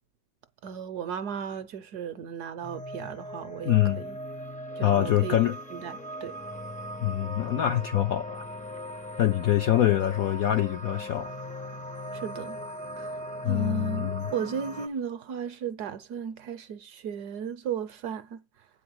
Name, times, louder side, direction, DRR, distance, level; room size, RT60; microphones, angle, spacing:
voice 1, 0.6-4.2 4.8-5.4 5.7-6.4 12.1-12.6 13.0-13.2 13.5-18.4, right 7 dB, 65° right, 1.1 m, -35 dB
sound 1, 2.6-14.9, equal, 10° left, 0.3 m, -39 dB
voice 2, 3.6-4.0 4.8-5.6 7.0-8.5 9.2-11.3 13.4-14.3, left 12 dB, 75° left, 0.8 m, -25 dB
8.4 x 4.8 x 6.2 m
omnidirectional pair, 2.2 m